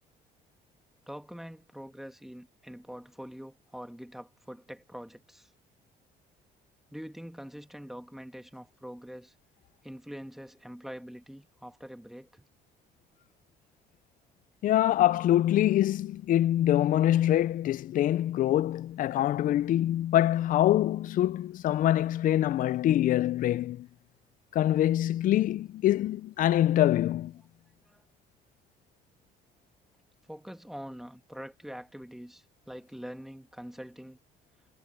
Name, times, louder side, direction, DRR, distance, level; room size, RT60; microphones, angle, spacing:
voice 1, 1.1-5.5 6.9-9.3 9.8-12.4 27.9-28.0 30.3-34.2, equal, ahead, 1.9 m, -44 dB
voice 2, 14.6-23.9 24.5-27.4, left 13 dB, 55° left, 0.4 m, -25 dB
cardioid pair, 110°, 17 cm